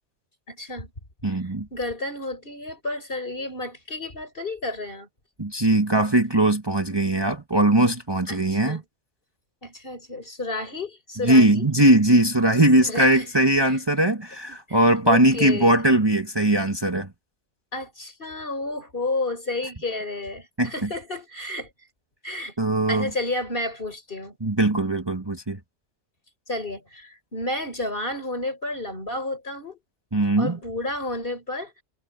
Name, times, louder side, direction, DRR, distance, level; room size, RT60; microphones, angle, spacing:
voice 1, 0.5-0.9 1.3-1.4 1.7-5.1 8.3-8.8 9.6-11.6 12.8-13.8 14.7-15.8 17.7-21.7 22.2-22.5 22.9-24.4 26.5-29.8 30.4-31.7, left 2 dB, 50° left, 4.9 m, -31 dB
voice 2, 1.2-1.7 5.4-8.8 11.2-17.1 20.6-20.9 22.6-23.1 24.4-25.6 30.1-30.6, right 1 dB, 20° right, 1.5 m, -20 dB
omnidirectional pair, 1.2 m